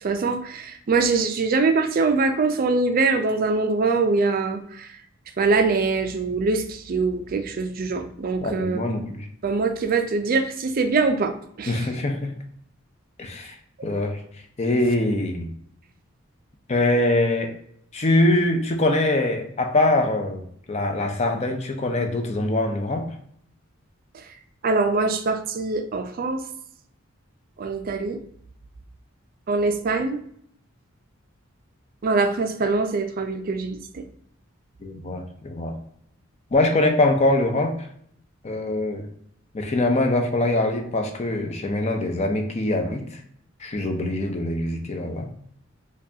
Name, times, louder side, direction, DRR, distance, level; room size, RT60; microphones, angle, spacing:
voice 1, 0.0-4.9 5.4-8.8 9.4-11.7 24.6-26.5 27.6-28.2 29.5-30.2 32.0-34.0, right 3 dB, 45° right, 7 dB, 0.4 m, -23 dB
voice 2, 8.4-9.3 11.7-12.3 13.2-13.6 13.8-14.2 14.6-15.5 16.7-17.5 17.9-23.0 34.8-35.7 36.5-37.7 38.4-39.1 39.5-43.2 43.6-45.3, left 2 dB, 30° left, 4 dB, 0.5 m, -23 dB
4.7 x 2.3 x 2.6 m, 0.67 s
head